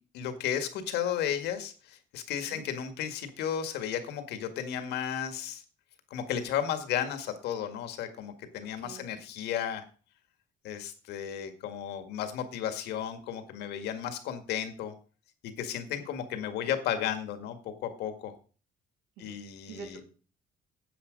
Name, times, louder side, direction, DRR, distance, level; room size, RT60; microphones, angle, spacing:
voice 1, 0.1-5.6 6.1-9.8 10.6-14.9 15.4-18.3 19.2-20.0, left 9 dB, 80° left, 8 dB, 1.9 m, -34 dB
voice 2, 19.7-20.1, right 5 dB, 85° right, 3 dB, 3.1 m, -45 dB
10.5 x 7.5 x 5.3 m, 0.39 s
cardioid pair, 110°, 17 cm